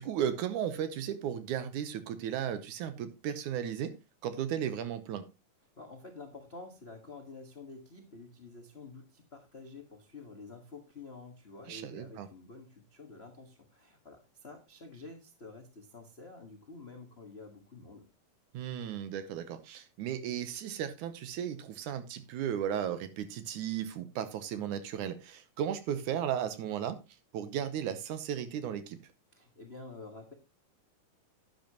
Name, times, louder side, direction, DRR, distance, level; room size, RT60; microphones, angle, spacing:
voice 1, 0.0-3.9 4.2-5.3 11.7-12.3 18.5-27.0 27.3-29.0, right 9 dB, 75° right, 2.2 m, -35 dB
voice 2, 5.8-18.0 29.3-30.3, left 3 dB, 60° left, 0.6 m, -49 dB
11.0 x 10.5 x 2.9 m
omnidirectional pair, 3.9 m